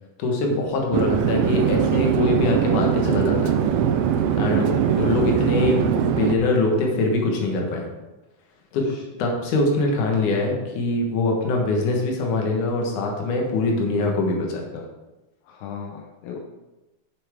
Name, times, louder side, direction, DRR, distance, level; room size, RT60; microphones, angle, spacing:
voice 1, 0.2-3.5 4.4-7.8 8.7-8.9 9.2-14.8, left 2 dB, 60° left, 1 dB, 2.4 m, -23 dB
Chatter / Fixed-wing aircraft airplane, 0.9-6.4, right 8 dB, 85° right, 2.0 m, -21 dB
voice 2, 4.5-4.9 8.9-9.0 15.5-16.4, left 7 dB, 80° left, 1 dB, 2.1 m, -37 dB
9.5 x 7.0 x 3.6 m, 1.1 s
omnidirectional pair, 4.8 m